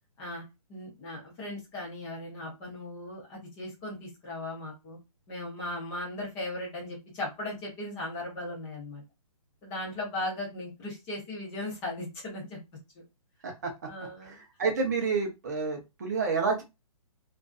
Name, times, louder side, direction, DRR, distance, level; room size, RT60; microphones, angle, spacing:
voice 1, 0.7-5.0 5.3-9.0 9.6-12.6 13.9-14.4, left 1 dB, 15° left, -3 dB, 0.6 m, -37 dB
voice 2, 14.2-16.6, right 4 dB, 30° right, 2 dB, 0.5 m, -29 dB
2.5 x 2.3 x 2.3 m, 0.24 s
hypercardioid pair, 170°, 19 cm